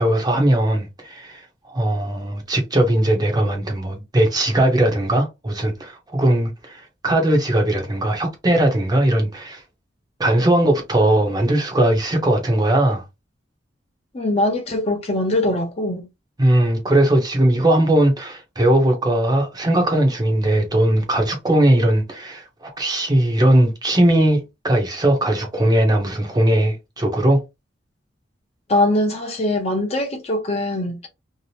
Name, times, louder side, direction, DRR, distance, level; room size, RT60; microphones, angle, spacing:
voice 1, 0.0-1.4 1.7-9.6 10.2-13.0 16.4-27.4, right 1 dB, 20° right, 0.7 m, -19 dB
voice 2, 14.1-16.1 28.7-31.1, left 1 dB, 35° left, 0.6 m, -22 dB
2.7 x 2.0 x 2.9 m
head